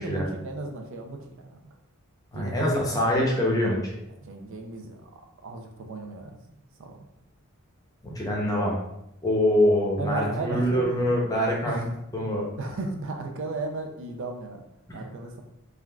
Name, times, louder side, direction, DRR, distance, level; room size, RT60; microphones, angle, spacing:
voice 1, 0.0-1.5 2.3-2.6 4.2-5.0 5.4-6.4 6.8-7.0 10.0-11.1 11.7-11.8 12.1-14.6 14.9-15.4, right 2 dB, 60° right, 4 dB, 0.5 m, -35 dB
voice 2, 2.3-4.0 8.0-8.8 9.2-11.8 12.1-12.5 14.9-15.0, equal, 15° left, -2 dB, 0.6 m, -24 dB
3.3 x 2.4 x 2.3 m, 0.82 s
head